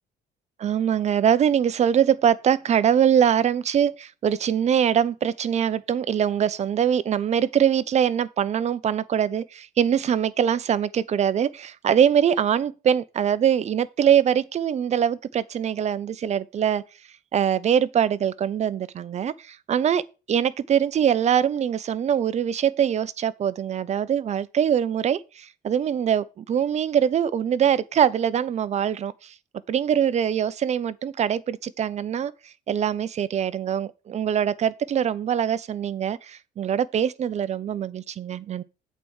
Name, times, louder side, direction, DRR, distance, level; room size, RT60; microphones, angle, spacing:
voice 1, 0.6-16.8 17.3-29.3 29.7-38.6, right 9 dB, 40° right, 0.7 m, -23 dB
8.2 x 4.6 x 7.1 m
cardioid pair, 110°, 17 cm